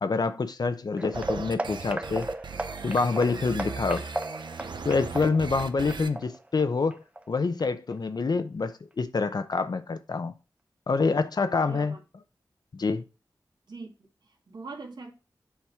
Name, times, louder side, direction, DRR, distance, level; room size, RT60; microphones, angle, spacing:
voice 1, 0.0-2.3 2.8-4.0 4.8-7.0 7.3-10.3 10.9-11.9 12.7-13.0, left 4 dB, 60° left, 0.6 m, -26 dB
sound 1, 1.0-7.6 7.9-8.2 8.6-8.7 9.2-9.3, right 1 dB, 15° right, 0.6 m, -36 dB
sound 2, 1.1-6.1, right 5 dB, 85° right, 0.7 m, -38 dB
voice 2, 11.7-12.0 13.7-15.1, right 3 dB, 65° right, 2.1 m, -42 dB
7.2 x 4.7 x 3.4 m
wide cardioid pair, 85°, 8 cm